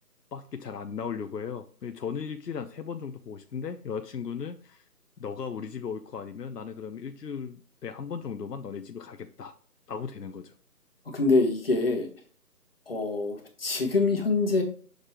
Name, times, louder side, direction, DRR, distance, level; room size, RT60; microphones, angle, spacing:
voice 1, 0.3-4.8 5.2-9.5 9.9-10.5, left 6 dB, 80° left, 7 dB, 0.8 m, -36 dB
voice 2, 11.1-12.1 12.9-14.6, left 3 dB, 35° left, 3 dB, 1.3 m, -25 dB
6.5 x 5.2 x 2.9 m, 0.42 s
figure-of-eight pair, 170°, 47 cm